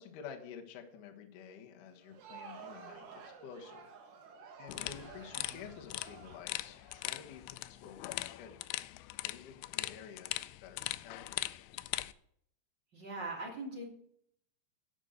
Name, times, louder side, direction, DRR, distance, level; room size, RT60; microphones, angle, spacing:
voice 1, 0.0-3.9 4.6-8.7 9.1-11.9, left 7 dB, 65° left, 2 dB, 2.1 m, -51 dB
Crowd, 1.9-7.8, right 6 dB, 60° right, 2.2 m, -52 dB
sound 1, 4.7-12.1, left 18 dB, 90° left, 2.5 m, -41 dB
voice 2, 12.9-13.8, right 2 dB, 30° right, -3 dB, 2.6 m, -41 dB
11.0 x 5.4 x 8.0 m, 0.67 s
omnidirectional pair, 5.7 m